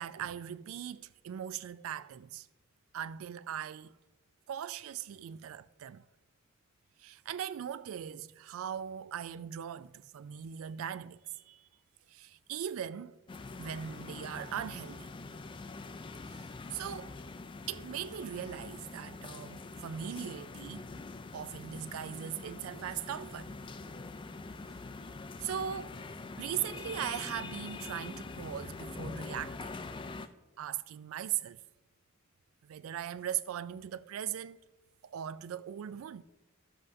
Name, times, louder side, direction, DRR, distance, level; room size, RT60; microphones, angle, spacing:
voice 1, 0.0-2.5 2.9-3.9 4.5-6.1 7.0-11.7 12.1-13.2 13.6-15.1 16.3-17.1 17.7-20.9 21.3-23.5 25.4-25.9 26.4-29.8 30.6-31.6 32.6-34.6 35.0-36.2, right 9 dB, 70° right, 0.3 m, -39 dB
sound 1, 13.3-30.3, left 3 dB, 25° left, 0.3 m, -44 dB
13.0 x 7.6 x 2.6 m
head